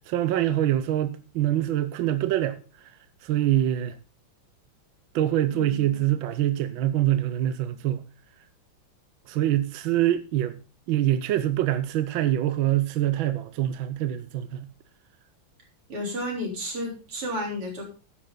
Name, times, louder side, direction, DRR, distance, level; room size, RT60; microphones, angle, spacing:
voice 1, 0.1-2.6 3.2-4.0 5.1-8.0 9.3-10.6 10.9-14.7, right 13 dB, 70° right, 1.5 m, -25 dB
voice 2, 5.5-5.8 15.9-17.8, left 1 dB, 90° right, 4.8 m, -32 dB
12.0 x 10.0 x 3.8 m
omnidirectional pair, 2.4 m